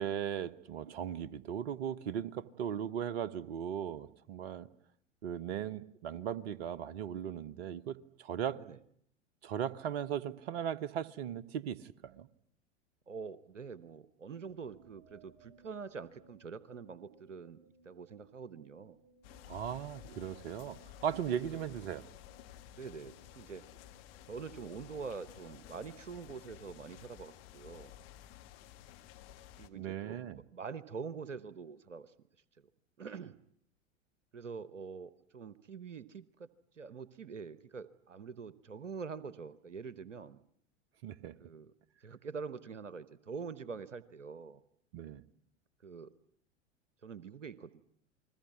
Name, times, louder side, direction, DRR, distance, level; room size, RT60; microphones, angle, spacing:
voice 1, 0.0-4.7 5.2-8.6 9.4-12.3 19.5-22.1 29.7-30.4 41.0-41.3 44.9-45.2, right 9 dB, 55° right, 1.2 m, -38 dB
voice 2, 13.1-17.6 17.8-19.0 22.7-23.6 24.3-27.9 29.6-32.1 33.0-33.4 34.3-36.5 36.8-40.4 41.4-41.7 42.0-44.6 45.8-46.1 47.0-47.8, right 5 dB, 80° right, 1.1 m, -45 dB
sound 1, 14.5-26.5, right 3 dB, 25° right, 6.0 m, -66 dB
sound 2, 19.2-29.7, left 12 dB, 50° left, 1.9 m, -54 dB
29.5 x 21.0 x 9.5 m
figure-of-eight pair, 85°, 37 cm